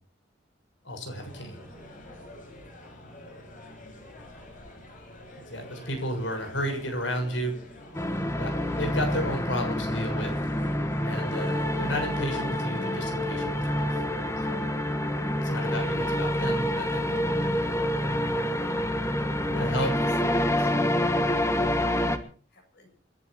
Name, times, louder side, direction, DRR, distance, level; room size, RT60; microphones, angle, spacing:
voice 1, 0.8-1.6 5.5-7.6 8.4-10.3 11.0-14.0 14.5-14.7 15.3-17.5 19.5-19.9, equal, 85° left, 4 dB, 6.7 m, -33 dB
sound 1, 1.2-12.6, left 1 dB, 45° left, 7.2 m, -46 dB
sound 2, 7.9-22.2, left 1 dB, 15° left, 1.5 m, -27 dB
voice 2, 19.5-19.9 20.2-20.8 21.8-22.9, left 4 dB, 60° left, 3 dB, 7.5 m, -50 dB
29.0 x 11.0 x 4.4 m, 0.42 s
head